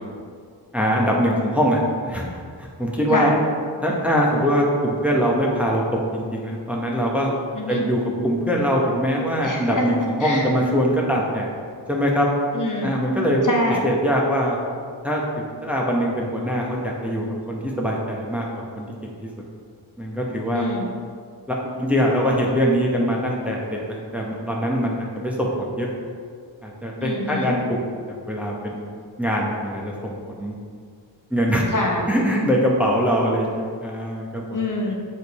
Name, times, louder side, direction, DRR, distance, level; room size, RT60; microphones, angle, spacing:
voice 1, 0.7-2.2 2.6-3.3 3.8-5.8 6.1-7.3 7.7-11.5 11.9-12.3 12.8-13.4 13.8-14.6 15.0-15.2 15.6-18.5 18.8-18.9 19.2-19.3 20.0-20.6 21.5-25.9 26.6-27.8 28.1-28.8 29.2-30.5 31.3-31.6 32.1-34.4, equal, 5° right, -3 dB, 1.0 m, -22 dB
voice 2, 7.5-7.9 9.4-10.5 12.5-12.9 13.4-13.8 20.5-20.9 27.0-27.5 31.7-32.1 34.5-35.0, left 1 dB, 40° left, -1 dB, 1.0 m, -25 dB
6.6 x 5.0 x 4.1 m, 2.1 s
wide cardioid pair, 95°, 48 cm